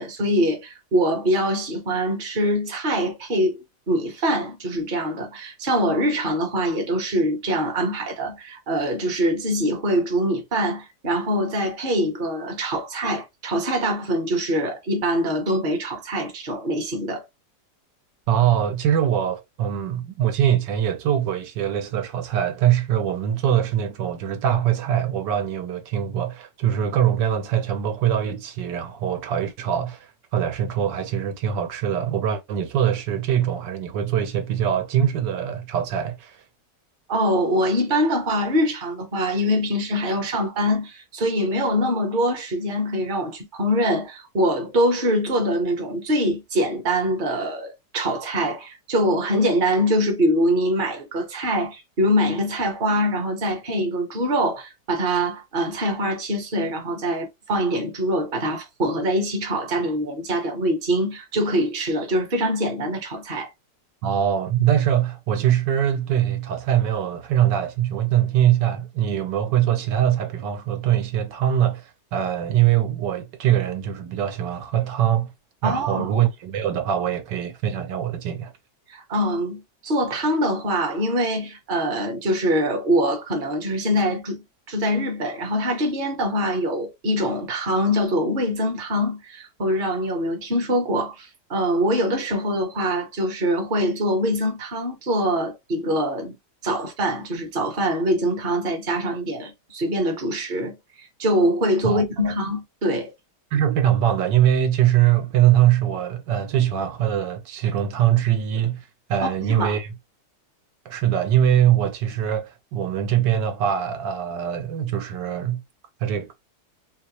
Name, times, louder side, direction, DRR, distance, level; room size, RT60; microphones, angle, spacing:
voice 1, 0.0-17.2 37.1-63.5 75.6-76.1 78.9-84.4 84.7-96.4 96.6-103.1 109.2-109.8, equal, 35° right, 1.0 m, -24 dB
voice 2, 18.3-36.4 64.0-75.3 75.6-78.5 101.8-102.3 103.5-109.9 110.8-115.6 116.0-116.3, right 10 dB, 85° right, 1.3 m, -22 dB
3.9 x 2.3 x 2.8 m
omnidirectional pair, 1.9 m